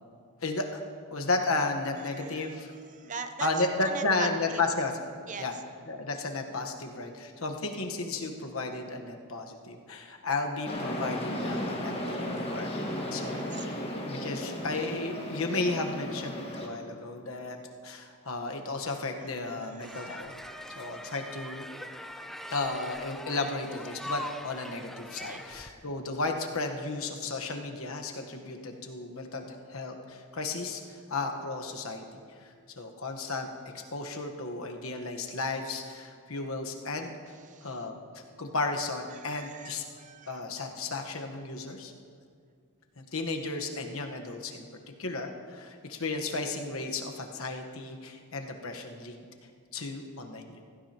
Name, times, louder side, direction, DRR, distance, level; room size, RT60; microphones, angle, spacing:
voice 1, 0.4-0.8 1.1-2.7 3.4-4.9 5.4-5.5 5.9-13.7 14.1-17.6 17.8-20.3 20.7-21.6 22.5-32.0 32.4-33.5 33.7-37.1 37.6-39.8 40.3-41.9 43.0-44.6 45.0-49.2 49.7-50.6, left 3 dB, 75° left, 3 dB, 1.2 m, -34 dB
voice 2, 2.1-2.6 2.9-4.3 5.3-5.5 13.2-13.8 19.2-20.8 25.3-25.4 37.5-37.8 39.1-40.4, right 5 dB, 35° right, 8 dB, 0.7 m, -42 dB
sound 1, 10.7-16.7, left 1 dB, 25° left, 1.6 m, -35 dB
sound 2, 19.8-25.7, left 1 dB, ahead, 0.4 m, -42 dB
15.5 x 15.5 x 2.9 m, 2.2 s
head